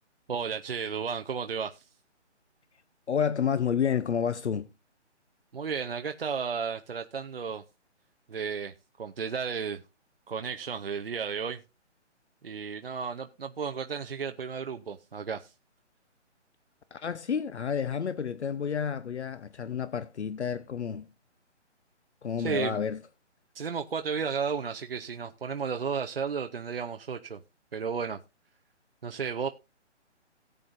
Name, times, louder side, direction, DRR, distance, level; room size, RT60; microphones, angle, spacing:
voice 1, 0.3-1.8 5.5-7.6 8.3-9.8 10.3-11.6 12.4-15.5 22.4-22.8 23.5-27.4 27.7-28.2 29.0-29.5, right 6 dB, 55° right, 0.7 m, -33 dB
voice 2, 3.1-4.7 16.9-21.1 22.2-23.0, left 7 dB, 70° left, 0.8 m, -30 dB
17.0 x 7.9 x 2.6 m
hypercardioid pair, 175°, 36 cm